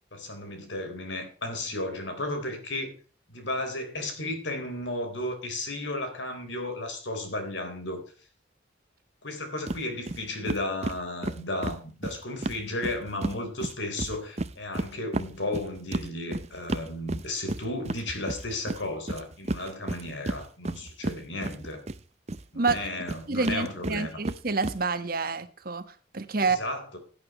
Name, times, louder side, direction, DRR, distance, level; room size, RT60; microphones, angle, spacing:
voice 1, 0.1-2.9 3.3-8.0 9.2-21.8 22.5-24.2 26.4-27.0, left 1 dB, 75° left, 3.7 m, -34 dB
sound 1, 9.7-9.8 10.1-10.2 10.5-13.4 13.6-22.0 22.3-24.8, right 2 dB, 35° right, 0.6 m, -32 dB
voice 2, 23.3-26.6, right 4 dB, 50° right, 1.2 m, -28 dB
16.5 x 9.2 x 3.0 m
head